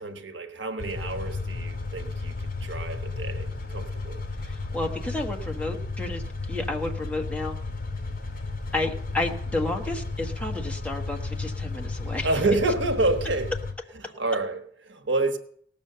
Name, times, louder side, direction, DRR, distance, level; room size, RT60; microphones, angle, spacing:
voice 1, 0.0-4.2 12.2-13.5 14.2-15.4, right 2 dB, 70° right, 1.3 m, -28 dB
sound 1, 0.8-13.7, left 3 dB, 50° left, 2.4 m, -33 dB
voice 2, 4.4-6.2 6.5-7.6 8.7-12.3, left 2 dB, 5° left, 1.3 m, -31 dB
18.0 x 7.2 x 6.7 m
head